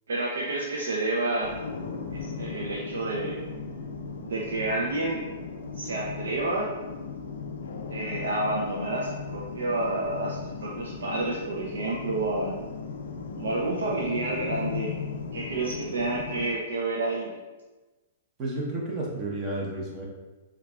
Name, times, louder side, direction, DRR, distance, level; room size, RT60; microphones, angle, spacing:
voice 1, 0.1-1.5 2.1-3.4 4.2-5.2 5.7-6.7 7.9-12.5 13.4-14.9 15.3-17.3, right 2 dB, 85° right, -3 dB, 0.5 m, -29 dB
sound 1, 1.4-16.4, left 5 dB, 85° left, 0.4 m, -37 dB
voice 2, 18.4-20.1, right 2 dB, 35° right, -3 dB, 0.8 m, -31 dB
4.5 x 2.3 x 2.3 m, 1.2 s
hypercardioid pair, 130°, 0 cm